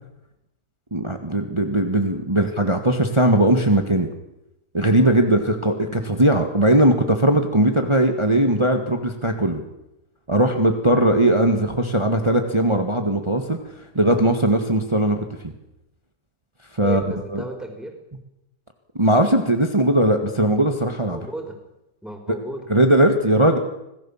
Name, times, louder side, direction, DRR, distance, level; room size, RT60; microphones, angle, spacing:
voice 1, 0.9-4.1 4.7-9.6 10.3-13.6 14.0-15.5 16.7-17.0 17.3-17.4 19.0-21.2 22.7-23.6, right 1 dB, 15° right, 5 dB, 1.8 m, -19 dB
voice 2, 16.8-17.9 21.1-21.6 22.0-22.7, right 1 dB, ahead, 4 dB, 4.8 m, -34 dB
26.5 x 19.0 x 7.4 m, 0.89 s
omnidirectional pair, 1.8 m